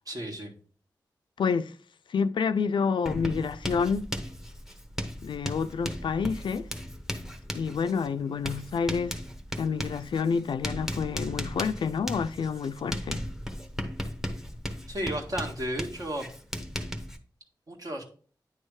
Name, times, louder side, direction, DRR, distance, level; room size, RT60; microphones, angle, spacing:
voice 1, 0.1-0.5 14.9-16.3 17.7-18.0, equal, 50° right, 1.8 m, -33 dB
voice 2, 1.4-1.7 2.1-4.1 5.2-6.7 7.5-9.2 9.6-13.2, left 5 dB, 85° left, 0.4 m, -28 dB
Writing, 3.1-17.2, equal, 5° right, 0.9 m, -36 dB
9.4 x 3.3 x 4.8 m
cardioid pair, 60°, 8 cm